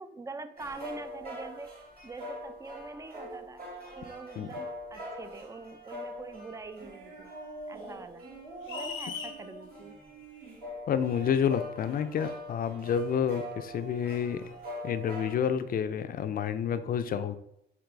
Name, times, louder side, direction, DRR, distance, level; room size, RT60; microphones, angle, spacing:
voice 1, 0.0-1.7 2.0-3.7 4.0-7.3 7.7-8.3 8.7-10.0, right 3 dB, 15° right, 11 dB, 0.4 m, -44 dB
sound 1, 0.6-15.5, left 1 dB, 50° right, 1.6 m, -43 dB
sound 2, 8.7-9.4, left 6 dB, 85° left, 0.7 m, -38 dB
voice 2, 10.9-14.5 14.8-17.4, left 8 dB, 45° left, 11 dB, 0.4 m, -29 dB
4.6 x 2.9 x 3.8 m, 0.77 s
cardioid pair, 90°, 20 cm